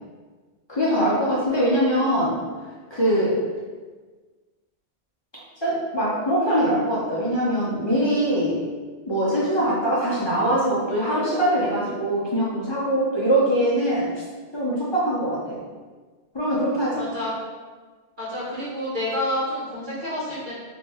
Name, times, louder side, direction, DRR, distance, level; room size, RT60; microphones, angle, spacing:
voice 1, 0.7-2.4 2.9-3.4 5.6-8.6 9.1-14.1 14.5-15.6 16.3-17.0, right 1 dB, 40° left, -8 dB, 0.4 m, -22 dB
voice 2, 17.0-17.3 18.2-20.5, left 1 dB, 45° right, -9 dB, 1.2 m, -28 dB
2.8 x 2.1 x 3.4 m, 1.4 s
omnidirectional pair, 1.2 m